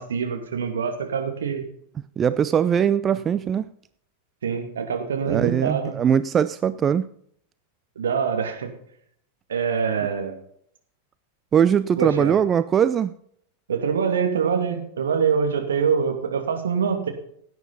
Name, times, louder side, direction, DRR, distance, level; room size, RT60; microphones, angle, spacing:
voice 1, 0.0-1.6 4.4-6.0 8.0-8.7 9.5-10.4 12.0-12.4 13.7-17.1, right 6 dB, 65° right, 2.4 m, -24 dB
voice 2, 2.2-3.7 5.3-7.1 11.5-13.2, right 8 dB, 25° right, 0.4 m, -21 dB
17.0 x 9.2 x 4.2 m
figure-of-eight pair, 90°, 0 cm